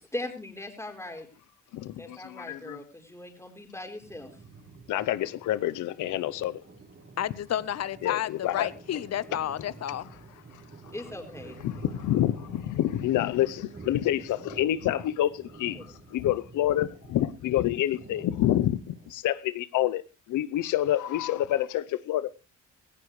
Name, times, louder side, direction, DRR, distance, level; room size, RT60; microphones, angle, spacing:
voice 1, 0.1-1.3 2.0-4.3 10.9-11.6, left 1 dB, 10° left, 4.4 m, -39 dB
voice 2, 1.7-2.8 4.9-6.6 8.0-8.7 11.6-20.0 20.3-22.3, left 13 dB, 80° left, 0.8 m, -27 dB
sound 1, 4.0-19.1, right 3 dB, 40° right, 4.9 m, -49 dB
voice 3, 7.2-10.1, left 11 dB, 60° left, 1.0 m, -31 dB
17.5 x 16.0 x 3.2 m
cardioid pair, 90°, 30 cm